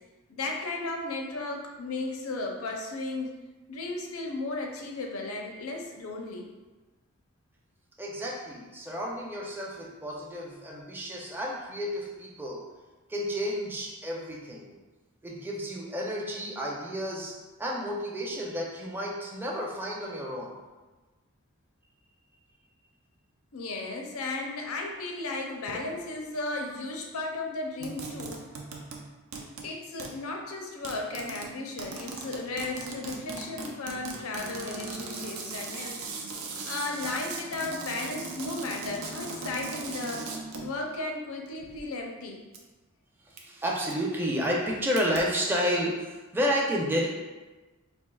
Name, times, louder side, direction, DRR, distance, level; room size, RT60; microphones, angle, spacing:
voice 1, 0.3-3.3 3.7-6.5 23.5-28.4 29.6-36.0 36.7-40.3 40.6-42.4, left 2 dB, 85° left, 1 dB, 0.6 m, -35 dB
voice 2, 8.0-12.6 13.1-14.8 15.2-20.6 43.2-47.1, equal, 10° right, -2 dB, 0.5 m, -31 dB
sound 1, 27.8-29.1 29.3-29.7 30.0-30.2 30.8-40.8 41.5-41.8 42.5-42.6 43.4-43.6 43.9-44.0 45.0-45.2, right 3 dB, 85° right, 0.5 m, -38 dB
4.4 x 2.7 x 2.3 m, 1.2 s
head